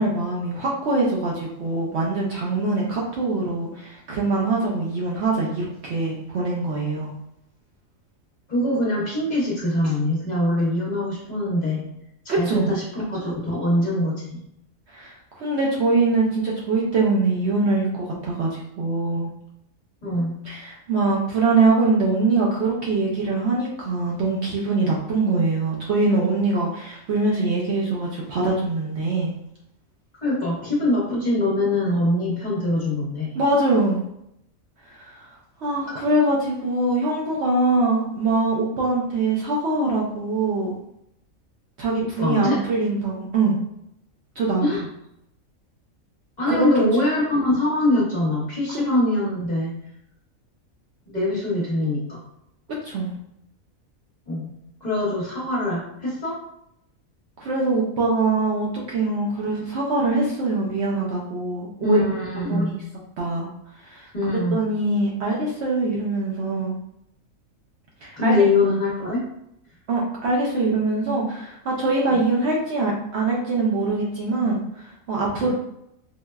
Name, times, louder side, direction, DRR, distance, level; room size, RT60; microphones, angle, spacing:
voice 1, 0.0-7.1 12.3-12.7 14.9-19.3 20.4-29.3 33.3-34.0 34.9-35.3 35.6-40.7 41.8-43.6 44.4-44.7 46.5-46.7 48.7-48.8 52.8-53.2 57.4-62.0 62.5-62.8 63.2-63.5 63.8-64.1 64.5-66.7 68.0-68.3 69.9-75.5, right 3 dB, 65° right, -3 dB, 0.7 m, -23 dB
voice 2, 8.5-11.8 12.2-14.4 20.0-20.4 30.2-33.4 36.0-36.1 42.2-42.6 44.6-44.8 46.4-49.7 51.1-52.2 54.3-54.5 54.8-56.4 61.8-62.7 64.1-64.6 68.2-69.2 75.4-75.5, left 1 dB, 35° left, -7 dB, 1.0 m, -23 dB
4.4 x 2.1 x 2.2 m, 0.78 s
omnidirectional pair, 1.4 m